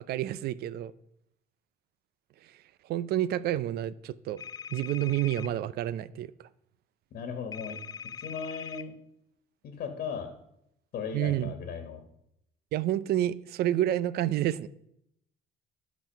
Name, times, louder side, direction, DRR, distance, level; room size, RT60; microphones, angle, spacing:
voice 1, 0.1-0.9 2.9-4.4 4.7-6.3 11.1-11.5 12.7-14.7, right 12 dB, 70° right, 0.5 m, -29 dB
sound 1, 4.4-5.5 7.5-8.8, left 7 dB, 25° left, 0.3 m, -41 dB
voice 2, 7.1-7.8 8.2-8.9 9.6-10.3 10.9-12.0, left 6 dB, 65° left, 1.4 m, -37 dB
12.0 x 4.1 x 5.2 m
cardioid pair, 110°, 17 cm